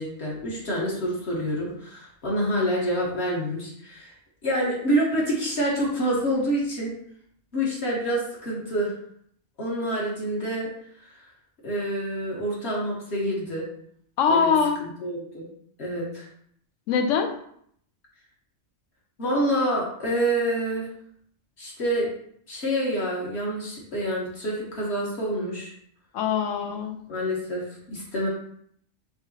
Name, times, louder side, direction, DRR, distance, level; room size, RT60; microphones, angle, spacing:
voice 1, 0.0-4.1 4.4-6.9 7.5-8.9 9.6-10.7 11.0-11.2 11.6-13.7 14.3-15.5 15.8-16.3 19.2-20.9 21.6-22.1 22.5-25.7 27.1-28.3, equal, 60° left, -5 dB, 1.4 m, -27 dB
voice 2, 14.2-14.8 16.9-17.4 26.1-27.1, left 6 dB, 85° left, 5 dB, 1.0 m, -23 dB
5.3 x 2.8 x 2.7 m, 0.66 s
omnidirectional pair, 1.3 m